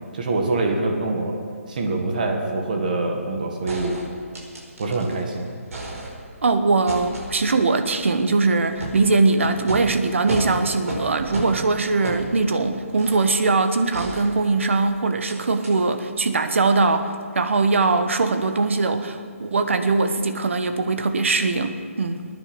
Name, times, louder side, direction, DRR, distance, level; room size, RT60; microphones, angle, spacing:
voice 1, 0.1-1.4 1.7-4.0 4.8-5.5, right 2 dB, 35° right, 2 dB, 1.9 m, -24 dB
sound 1, 3.7-5.2 5.5-6.5 6.9-13.4 13.9-14.8 15.2-15.4 15.6-15.7, right 1 dB, 75° right, 4.8 m, -33 dB
voice 2, 6.4-22.3, right 3 dB, 60° right, 8 dB, 1.2 m, -21 dB
20.0 x 10.0 x 6.2 m, 2.1 s
hypercardioid pair, 175°, 8 cm